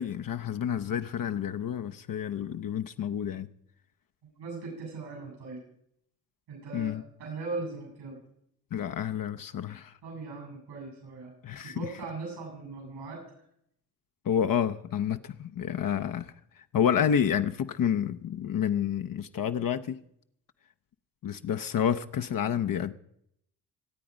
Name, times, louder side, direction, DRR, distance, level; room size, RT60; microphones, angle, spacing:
voice 1, 0.0-3.5 6.7-7.0 8.7-9.9 11.4-11.9 14.2-16.3 16.7-20.0 21.2-22.9, left 8 dB, 55° left, 0.7 m, -29 dB
voice 2, 4.2-5.6 6.5-8.2 10.0-11.3 11.6-13.2, right 3 dB, 85° right, 7.9 m, -39 dB
22.5 x 8.6 x 5.1 m
supercardioid pair, 55°, 39 cm